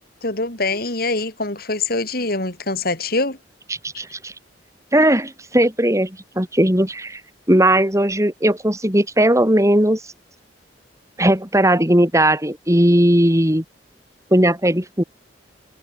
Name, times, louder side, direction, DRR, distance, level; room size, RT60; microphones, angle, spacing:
voice 1, 0.2-3.4, left 3 dB, 60° left, 6.2 m, -24 dB
voice 2, 4.0-4.3 4.9-7.2 7.5-10.0 11.2-13.6 14.3-15.0, right 1 dB, 20° right, 7.0 m, -17 dB
head